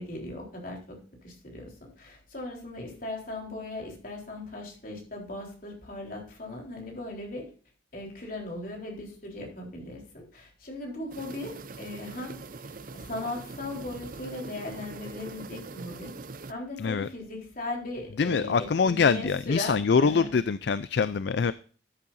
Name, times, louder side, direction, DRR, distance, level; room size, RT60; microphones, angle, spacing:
voice 1, 0.0-7.5 7.9-16.1 16.5-20.3, left 2 dB, 45° left, 0 dB, 3.8 m, -38 dB
sound 1, 11.1-16.5, right 3 dB, 45° right, 0.5 m, -42 dB
voice 2, 16.8-17.1 18.2-21.5, left 5 dB, 60° left, 16 dB, 0.4 m, -24 dB
13.5 x 8.5 x 2.6 m, 0.40 s
head